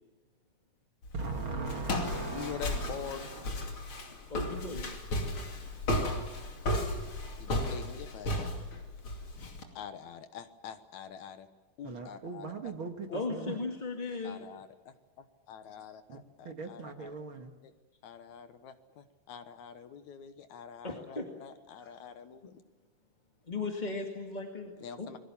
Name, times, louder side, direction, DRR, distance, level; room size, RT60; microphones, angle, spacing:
Walk footsteps, 1.0-9.6, left 1 dB, 40° left, 3.2 m, -34 dB
voice 1, 1.1-4.3 11.8-13.6 14.1-14.2 16.1-16.2 16.4-17.5, right 3 dB, 45° right, 5 dB, 2.1 m, -40 dB
voice 2, 2.3-3.5 7.4-8.4 9.8-11.5 11.8-12.5 13.1-13.2 14.2-17.1 17.6-17.7 18.0-22.5 24.8-25.2, left 8 dB, 65° left, 9 dB, 2.4 m, -45 dB
voice 3, 4.3-5.0 13.1-14.4 20.8-21.2 21.8-21.9 23.5-25.1, left 3 dB, 20° left, 1 dB, 1.5 m, -37 dB
29.5 x 21.5 x 7.2 m, 1.2 s
omnidirectional pair, 3.8 m